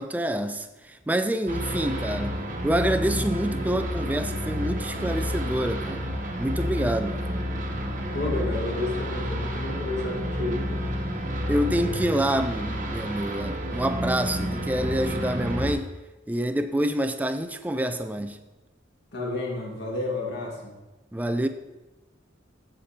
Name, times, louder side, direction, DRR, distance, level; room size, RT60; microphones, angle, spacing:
voice 1, 0.0-2.3 2.6-6.1 6.4-7.2 11.5-15.9 16.3-18.4 21.1-21.5, right 1 dB, 10° right, 8 dB, 0.4 m, -27 dB
sound 1, 1.5-15.7, equal, 45° right, 1.0 m, -30 dB
voice 2, 8.1-10.9 19.1-20.7, left 2 dB, 60° left, -2 dB, 1.9 m, -31 dB
13.5 x 5.1 x 2.9 m, 1.1 s
head